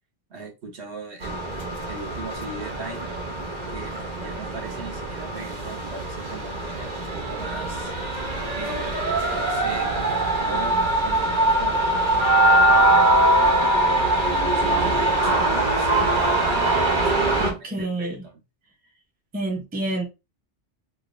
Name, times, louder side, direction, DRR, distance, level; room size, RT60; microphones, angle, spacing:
voice 1, 0.3-1.6 1.9-3.1 3.7-7.9 8.5-11.9 12.7-13.0 14.5-18.4, right 3 dB, 65° right, 1.2 m, -39 dB
sound 1, 1.2-17.5, right 1 dB, 40° right, 0.9 m, -22 dB
voice 2, 17.4-18.2 19.3-20.0, right 1 dB, 10° right, 0.6 m, -28 dB
3.5 x 2.6 x 2.5 m
omnidirectional pair, 1.2 m